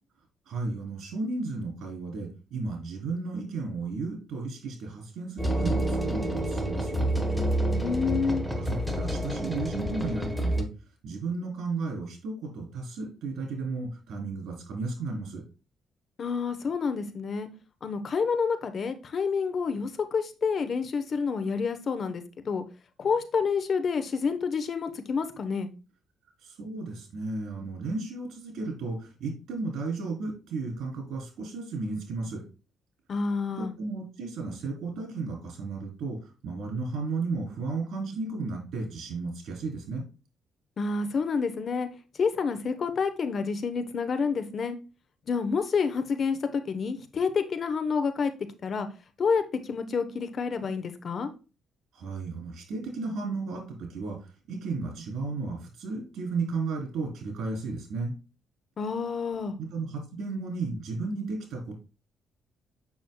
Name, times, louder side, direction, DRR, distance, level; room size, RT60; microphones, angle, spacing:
voice 1, 0.5-7.1 8.6-10.7 11.0-15.4 26.4-32.4 33.6-40.0 51.9-58.1 59.6-61.8, right 3 dB, 70° right, 3.2 m, -34 dB
sound 1, 5.4-10.6, right 1 dB, ahead, 1.2 m, -28 dB
voice 2, 7.7-8.4 16.2-17.5 17.8-22.6 23.0-25.7 33.1-33.7 40.8-41.9 42.2-44.8 45.3-48.3 48.6-48.9 49.2-51.3 58.8-59.5, left 5 dB, 50° left, 0.9 m, -28 dB
7.2 x 6.1 x 2.3 m
cardioid pair, 90°, 0 cm